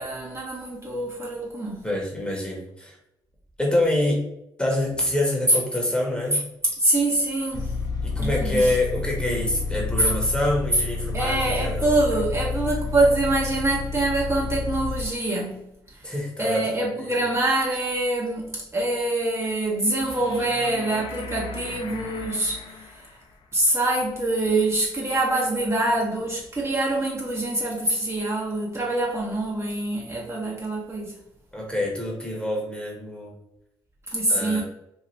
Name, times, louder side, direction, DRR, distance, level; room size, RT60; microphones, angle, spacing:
voice 1, 0.0-1.9 6.8-7.8 8.2-8.7 10.0-10.1 11.1-16.1 16.4-23.0 23.5-31.1 34.1-34.6, right 2 dB, 25° right, -4 dB, 0.9 m, -25 dB
voice 2, 1.8-3.0 3.6-4.2 4.6-6.4 8.0-11.9 16.0-17.2 31.5-33.3 34.3-34.6, left 1 dB, 10° left, -1 dB, 1.2 m, -26 dB
sound 1, 7.5-15.1, left 4 dB, 35° left, 0.8 m, -29 dB
sound 2, 20.0-23.3 26.0-26.1, left 4 dB, 55° left, 0.4 m, -38 dB
2.7 x 2.4 x 3.1 m, 0.81 s
hypercardioid pair, 50°, 10 cm